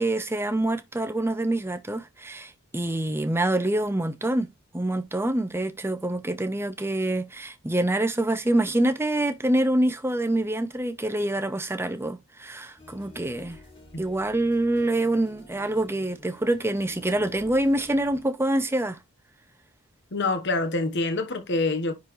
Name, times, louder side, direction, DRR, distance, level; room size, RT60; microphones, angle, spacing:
voice 1, 0.0-13.6 14.0-19.0, right 1 dB, 10° right, 0.6 m, -26 dB
sound 1, 12.8-18.2, left 1 dB, 25° left, 4.4 m, -50 dB
voice 2, 20.1-21.9, left 3 dB, 50° left, 1.1 m, -26 dB
10.0 x 3.9 x 3.1 m
head